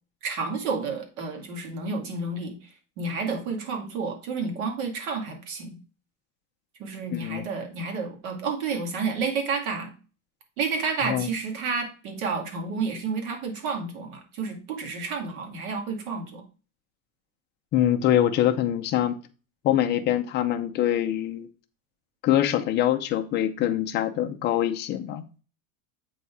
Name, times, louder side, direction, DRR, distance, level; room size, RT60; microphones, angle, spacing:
voice 1, 0.2-5.8 6.8-9.9 10.6-16.4, right 4 dB, 70° right, 2.5 m, -30 dB
voice 2, 7.1-7.4 11.0-11.3 17.7-19.2 19.6-21.5 22.2-25.2, left 11 dB, 25° left, 0.5 m, -24 dB
8.1 x 4.1 x 4.7 m
supercardioid pair, 160°, 43 cm